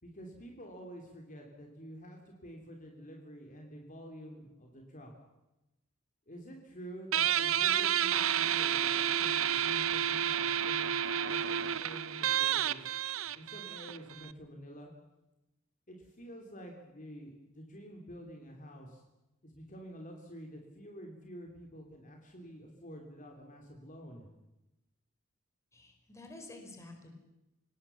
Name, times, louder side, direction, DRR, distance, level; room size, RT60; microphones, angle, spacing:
voice 1, 0.0-5.1 6.3-12.9 13.3-14.9 15.9-19.0 19.4-24.3, equal, 40° left, 2 dB, 3.3 m, -49 dB
Guitar, 7.1-14.3, right 10 dB, 85° right, 0.8 m, -30 dB
voice 2, 25.7-27.1, left 2 dB, 15° left, 3 dB, 4.7 m, -50 dB
26.0 x 19.0 x 7.2 m, 0.95 s
head